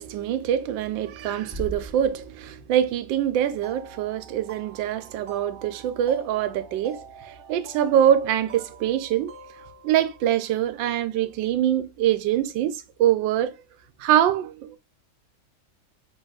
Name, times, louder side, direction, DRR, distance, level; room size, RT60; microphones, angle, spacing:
voice 1, 0.0-9.3 9.8-13.5 14.0-14.8, right 11 dB, 75° right, 1.3 m, -24 dB
sound 1, 1.5-3.0, right 1 dB, 15° left, 1.2 m, -38 dB
sound 2, 3.6-11.1, right 5 dB, 40° right, 0.8 m, -48 dB
6.3 x 3.4 x 2.4 m
omnidirectional pair, 2.2 m